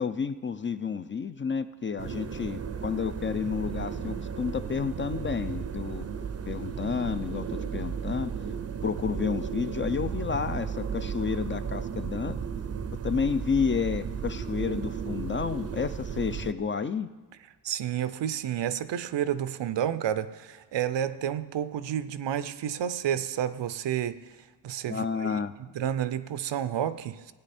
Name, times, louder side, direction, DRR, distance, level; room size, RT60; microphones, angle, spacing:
voice 1, 0.0-6.1 6.4-8.3 8.8-12.4 13.0-17.1 24.9-25.5, left 6 dB, 30° left, 12 dB, 0.4 m, -30 dB
sound 1, 2.0-16.5, right 7 dB, 35° right, 0.6 m, -34 dB
voice 2, 17.6-24.2 24.6-25.4 25.7-27.3, right 10 dB, 80° right, 14 dB, 0.6 m, -30 dB
15.0 x 9.2 x 4.3 m, 1.2 s
cardioid pair, 75°, 42 cm